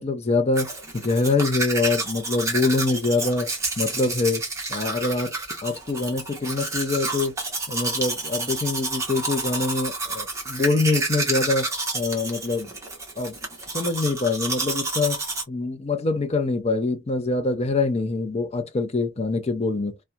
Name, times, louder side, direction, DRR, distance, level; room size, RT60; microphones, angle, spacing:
voice 1, 0.0-4.4 4.7-7.4 7.7-12.7 13.2-13.4 13.7-15.2 15.5-20.0, left 3 dB, 30° left, 0.5 m, -25 dB
Domestic sounds home sounds, 0.5-15.4, right 2 dB, 15° right, 0.8 m, -29 dB
2.7 x 2.2 x 2.3 m
head